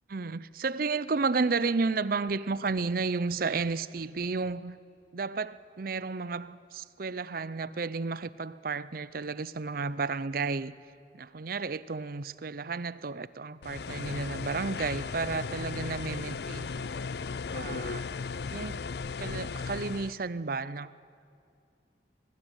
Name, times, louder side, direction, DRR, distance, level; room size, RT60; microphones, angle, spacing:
voice 1, 0.1-4.8 5.1-10.7 11.1-16.9 17.5-18.0 18.5-18.9 19.2-20.9, right 4 dB, 55° right, 0.6 m, -32 dB
sound 1, 13.6-20.1, left 4 dB, 60° left, 0.5 m, -36 dB
22.5 x 20.0 x 10.0 m
head